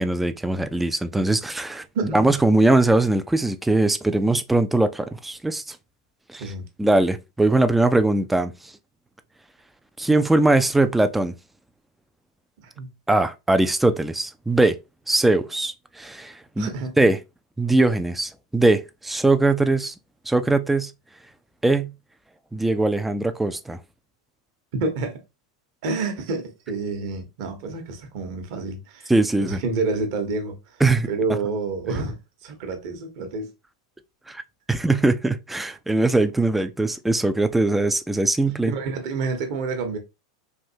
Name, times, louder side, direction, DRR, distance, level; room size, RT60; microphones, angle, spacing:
voice 1, 0.0-1.8 2.1-5.8 6.3-6.4 6.8-8.7 10.0-11.3 13.1-14.8 15.1-16.7 17.0-17.2 17.6-19.9 20.3-20.9 21.6-21.9 22.5-23.8 29.1-29.6 30.8-31.1 34.3-34.4 34.7-38.7, right 2 dB, 5° right, 0.3 m, -21 dB
voice 2, 1.9-2.3 6.4-6.6 12.6-12.9 16.6-16.9 24.7-25.2 25.8-29.1 29.4-30.6 31.1-32.1 32.4-33.5 38.6-40.0, right 3 dB, 55° right, 1.0 m, -28 dB
3.4 x 2.6 x 2.7 m
hypercardioid pair, 95°, 3 cm